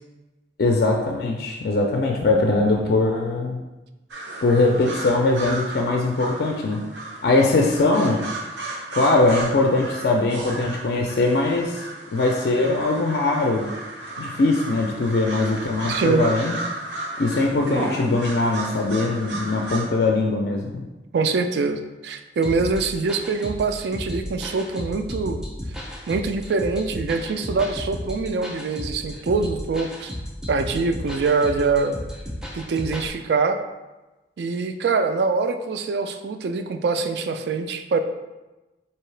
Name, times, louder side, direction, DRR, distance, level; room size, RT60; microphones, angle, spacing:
voice 1, 0.6-3.6 4.4-6.8 7.2-8.2 8.9-11.9 12.1-13.7 14.2-16.6 17.2-20.8, left 2 dB, 60° left, 1 dB, 0.4 m, -21 dB
sound 1, 4.1-19.9, right 2 dB, 85° right, 0.7 m, -34 dB
voice 2, 15.9-16.3 21.1-25.4 26.1-30.1 30.5-32.0 32.5-33.6 34.4-38.0, right 4 dB, 65° right, 8 dB, 0.3 m, -24 dB
sound 2, 22.4-33.1, equal, 5° right, 0.5 m, -34 dB
4.5 x 2.8 x 3.2 m, 1.1 s
head